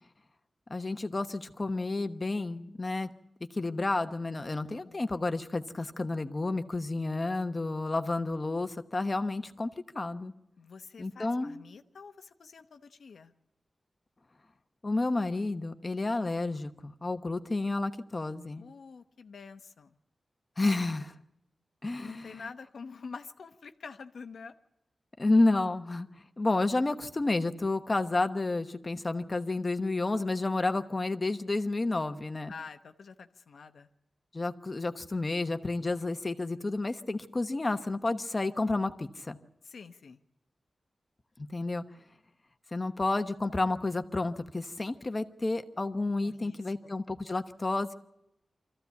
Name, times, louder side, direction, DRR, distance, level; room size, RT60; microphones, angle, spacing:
voice 1, 0.7-3.1 3.5-10.3 11.0-11.6 14.8-18.6 20.6-21.1 21.8-22.4 25.2-26.1 26.4-32.5 34.3-39.4 41.5-41.8 42.7-47.9, left 2 dB, 30° left, 8 dB, 1.0 m, -30 dB
voice 2, 4.8-5.2 10.6-13.3 18.6-20.0 22.0-24.5 32.5-33.9 39.6-40.2 46.2-47.0, left 5 dB, 85° left, 7 dB, 1.0 m, -47 dB
24.5 x 14.5 x 8.3 m, 0.87 s
wide cardioid pair, 125°, 0 cm